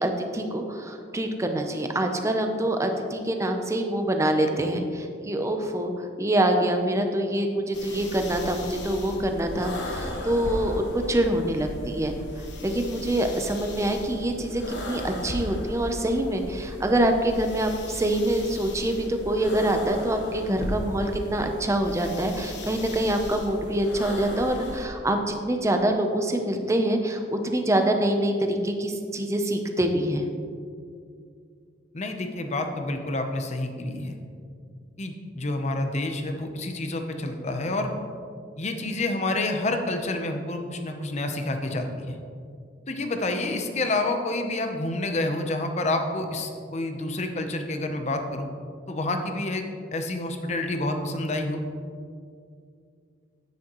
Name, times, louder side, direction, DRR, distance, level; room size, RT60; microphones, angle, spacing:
voice 1, 0.0-5.9 6.2-12.1 12.6-30.3, right 1 dB, 15° right, 4 dB, 0.6 m, -25 dB
sound 1, 7.7-24.9, left 1 dB, 65° left, 1.2 m, -36 dB
voice 2, 31.9-34.2 35.0-37.9 38.6-42.2 42.9-48.5 48.9-49.6 49.9-51.6, left 2 dB, 35° left, 5 dB, 0.7 m, -28 dB
9.4 x 9.1 x 3.0 m, 2.3 s
head